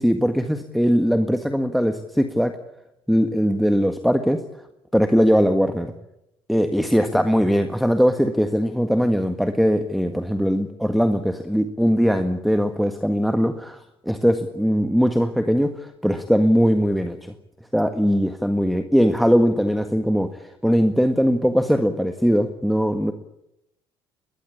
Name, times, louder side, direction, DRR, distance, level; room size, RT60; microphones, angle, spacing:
voice 1, 0.0-2.6 3.1-4.4 4.9-5.9 6.5-17.3 17.7-23.1, equal, ahead, 8 dB, 1.7 m, -20 dB
21.5 x 21.5 x 8.6 m, 0.84 s
hypercardioid pair, 55°, 13 cm